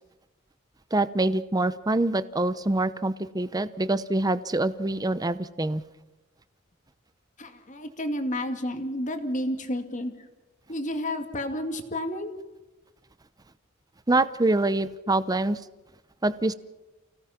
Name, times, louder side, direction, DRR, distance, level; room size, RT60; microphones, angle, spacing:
voice 1, 0.9-5.8 14.1-15.6 16.2-16.5, right 2 dB, 20° right, 15 dB, 0.7 m, -25 dB
voice 2, 7.4-10.1 10.7-12.3, left 1 dB, 40° left, 6 dB, 2.3 m, -31 dB
29.5 x 17.5 x 5.9 m, 1.1 s
head